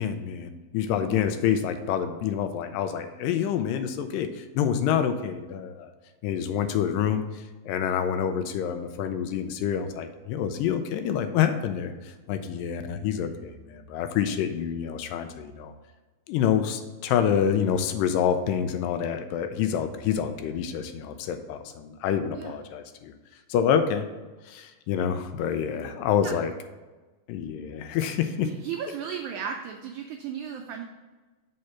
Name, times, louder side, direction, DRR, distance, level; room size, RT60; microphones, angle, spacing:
voice 1, 0.0-5.9 6.2-11.9 12.3-15.7 16.3-23.1 23.5-24.1 24.5-26.5 27.3-28.5, left 8 dB, 80° left, 9 dB, 2.1 m, -27 dB
voice 2, 28.4-30.8, right 8 dB, 85° right, 3 dB, 1.7 m, -35 dB
6.5 x 4.4 x 5.7 m, 1.2 s
omnidirectional pair, 4.1 m